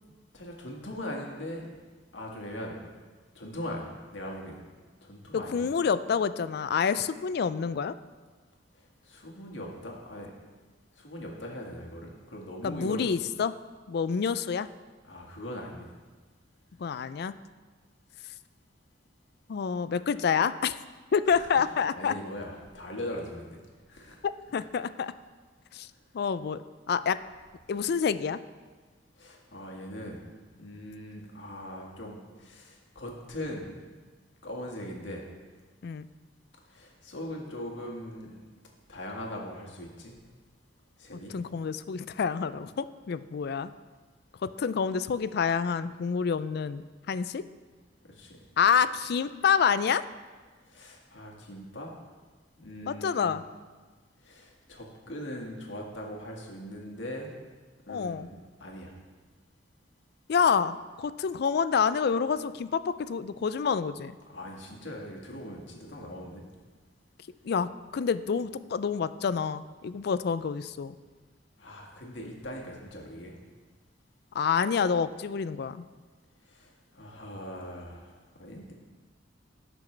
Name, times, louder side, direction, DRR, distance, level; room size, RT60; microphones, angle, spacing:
voice 1, 0.3-1.7 2.1-2.9 3.4-3.9 4.1-4.6 5.0-5.7 8.7-10.3 11.0-13.2 15.0-15.9 21.3-21.5 22.0-23.6 23.9-24.2 29.2-30.2 30.6-33.7 34.4-35.3 36.7-38.3 38.9-40.1 41.0-41.3 48.1-48.4 50.7-51.9 52.6-53.4 54.2-57.3 57.9-58.3 58.6-58.9 64.3-66.4 71.6-73.4 76.5-78.7, left 1 dB, 75° left, -1 dB, 1.8 m, -40 dB
voice 2, 5.3-7.9 12.6-13.5 13.9-14.7 16.8-17.3 19.5-20.8 21.1-22.1 24.2-25.1 25.7-25.9 26.1-26.6 26.9-27.2 27.7-28.4 35.8-36.1 41.3-43.7 44.4-46.8 47.1-47.4 48.6-50.0 52.9-53.4 57.9-58.3 60.3-64.1 67.4-70.9 74.3-75.8, left 6 dB, 55° left, 14 dB, 0.4 m, -28 dB
17.5 x 6.1 x 3.3 m, 1.4 s
head